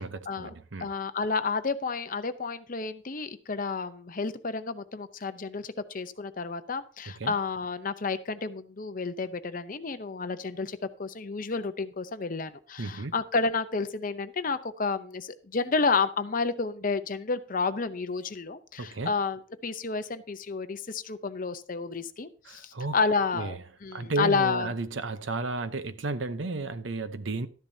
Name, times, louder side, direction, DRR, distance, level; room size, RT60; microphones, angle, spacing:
voice 1, 0.0-0.9 7.2-7.3 12.8-13.1 18.8-19.1 22.5-22.9 23.3-23.6 23.9-27.5, right 3 dB, 70° right, 0.8 m, -33 dB
voice 2, 0.8-24.7, left 4 dB, 45° left, 0.7 m, -30 dB
12.5 x 10.5 x 2.8 m
head